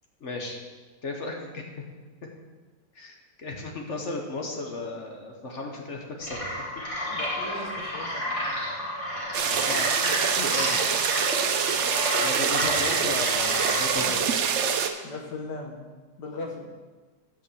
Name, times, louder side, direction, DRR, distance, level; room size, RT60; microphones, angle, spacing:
voice 1, 0.2-0.6 1.0-1.6 2.9-6.4 9.4-11.0 12.2-14.4, left 2 dB, 50° left, 1 dB, 1.2 m, -35 dB
sound 1, 6.2-14.1, equal, 20° left, 2.2 m, -31 dB
voice 2, 7.1-8.3 11.9-12.1 12.6-12.9 15.0-15.9 16.2-16.7, left 2 dB, 75° left, 1 dB, 1.9 m, -38 dB
sound 2, 9.3-14.9, right 7 dB, 65° right, 0.7 m, -25 dB
8.1 x 5.3 x 6.9 m, 1.3 s
omnidirectional pair, 1.8 m